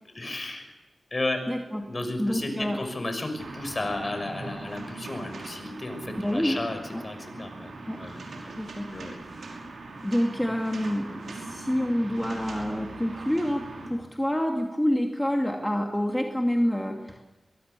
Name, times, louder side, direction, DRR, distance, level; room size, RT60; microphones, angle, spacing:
voice 1, 0.1-0.7 1.1-1.4 1.9-7.7 8.0-8.2 8.9-9.1, left 2 dB, 35° left, 7 dB, 6.0 m, -33 dB
voice 2, 1.5-1.9 2.2-2.8 6.2-6.6 6.9-7.0 7.3-7.5 7.9-8.0 8.6-8.9 9.2-9.4 10.0-17.2, equal, 10° left, 2 dB, 2.5 m, -27 dB
sound 1, 3.4-13.9, right 3 dB, 85° right, 5.6 m, -41 dB
23.5 x 22.5 x 7.0 m, 1.1 s
cardioid pair, 65°, 0 cm